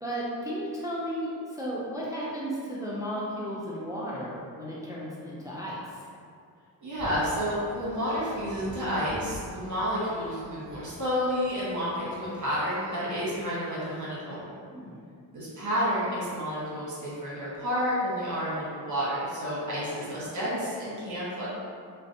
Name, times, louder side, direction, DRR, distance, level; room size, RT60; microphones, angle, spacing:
voice 1, 0.0-6.0 14.7-14.9, equal, 10° right, -7 dB, 0.3 m, -34 dB
voice 2, 6.8-14.5 15.3-21.5, equal, 40° right, -8 dB, 1.0 m, -30 dB
sound 1, 6.9-12.7, equal, 20° left, 1.1 m, -47 dB
2.5 x 2.0 x 2.5 m, 2.3 s
cardioid pair, 65°, 44 cm